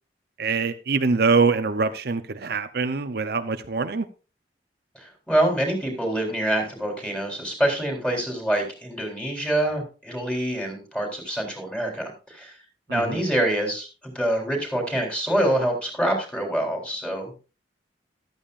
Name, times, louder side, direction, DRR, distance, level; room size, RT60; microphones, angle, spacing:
voice 1, 0.4-4.1 12.9-13.2, right 4 dB, 60° right, 9 dB, 0.8 m, -24 dB
voice 2, 5.0-12.5 12.9-13.9 14.1-17.5, right 1 dB, 5° left, 1 dB, 3.8 m, -26 dB
14.0 x 12.0 x 2.5 m, 0.32 s
head